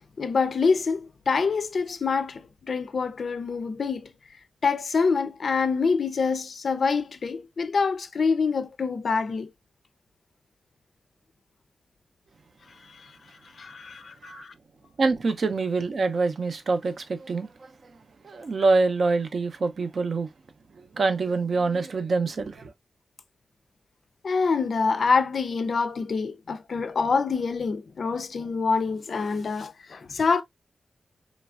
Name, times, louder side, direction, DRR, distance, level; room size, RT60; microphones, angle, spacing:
voice 1, 0.2-4.1 4.6-9.5 12.9-13.1 13.5-14.5 24.2-30.4, left 4 dB, 65° left, 0.3 m, -26 dB
voice 2, 15.0-17.9 18.2-20.3 20.8-22.7, right 3 dB, 65° right, 0.5 m, -25 dB
3.1 x 2.4 x 2.3 m
wide cardioid pair, 85°, 0 cm